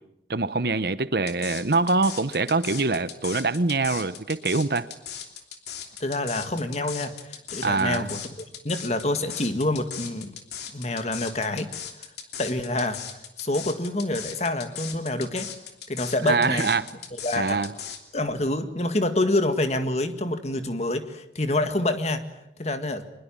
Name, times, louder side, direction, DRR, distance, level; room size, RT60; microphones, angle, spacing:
voice 1, 0.3-4.9 7.6-8.1 16.3-16.9 17.4-17.7, right 3 dB, 60° right, 15 dB, 1.0 m, -24 dB
sound 1, 1.3-18.0, left 8 dB, 70° left, 3.0 m, -38 dB
voice 2, 6.0-8.2 8.6-10.3 10.7-11.7 12.4-15.5 15.9-16.7 17.2-17.7 18.1-22.2 22.6-23.1, left 2 dB, 40° left, 9 dB, 1.9 m, -27 dB
24.0 x 21.5 x 8.8 m, 0.86 s
head